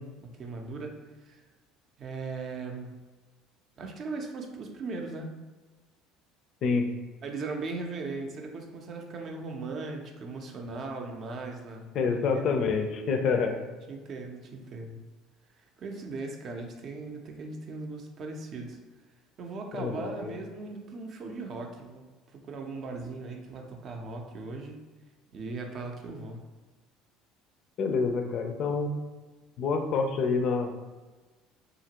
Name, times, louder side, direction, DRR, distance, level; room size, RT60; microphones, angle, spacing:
voice 1, 0.2-1.4 2.0-3.0 3.8-5.4 7.2-12.4 13.6-15.0 15.8-18.8 19.4-22.0 22.3-24.8 25.3-26.4, right 3 dB, 50° right, 2 dB, 0.5 m, -38 dB
voice 2, 11.9-13.6 19.8-20.3 27.8-28.9 29.6-30.7, left 5 dB, 55° left, 5 dB, 0.4 m, -27 dB
2.8 x 2.5 x 2.8 m, 1.3 s
hypercardioid pair, 80°, 0 cm